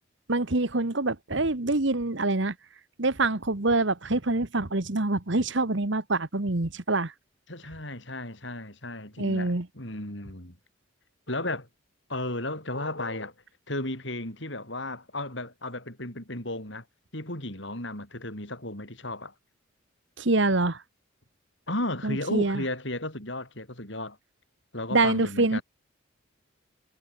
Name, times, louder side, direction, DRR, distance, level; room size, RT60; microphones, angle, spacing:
voice 1, 0.3-2.5 3.0-7.1 9.2-9.7 20.2-20.8 22.0-22.6 24.9-25.6, right 2 dB, 60° right, 1.4 m, -25 dB
voice 2, 7.5-10.6 11.3-11.7 12.1-13.3 13.7-16.8 17.1-19.3 21.7-24.2 24.7-25.6, left 1 dB, 60° left, 7.1 m, -34 dB
head